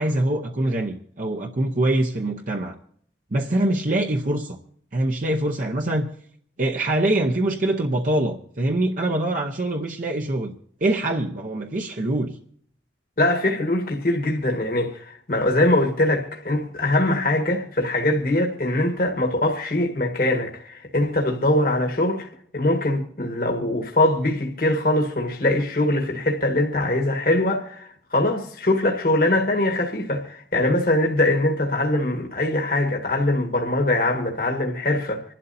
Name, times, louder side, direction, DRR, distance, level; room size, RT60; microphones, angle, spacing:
voice 1, 0.0-2.7 3.3-4.6 4.9-6.1 6.6-10.5 10.8-12.4, right 1 dB, 45° right, 0.8 m, -24 dB
voice 2, 13.2-22.3 22.5-35.2, left 1 dB, 55° left, 1.5 m, -22 dB
26.0 x 12.0 x 2.7 m
head